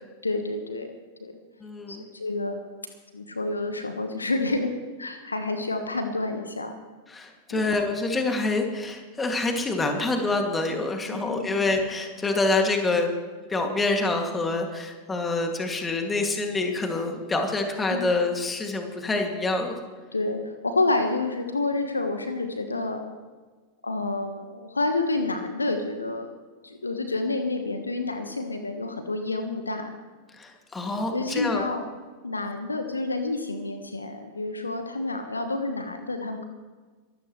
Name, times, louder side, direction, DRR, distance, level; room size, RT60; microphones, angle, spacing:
voice 1, 0.2-1.3 1.9-2.7 3.1-4.7 5.0-6.8 7.5-7.7 11.1-11.5 17.9-18.0 20.1-23.1 23.8-26.3 26.6-29.9 31.1-31.8 32.2-36.4, left 2 dB, 80° left, 7 dB, 1.4 m, -29 dB
voice 2, 1.6-2.0 7.1-13.1 13.5-19.7 30.4-31.6, left 2 dB, 15° left, 3 dB, 2.5 m, -26 dB
23.5 x 13.5 x 3.3 m, 1.4 s
figure-of-eight pair, 90°, 0 cm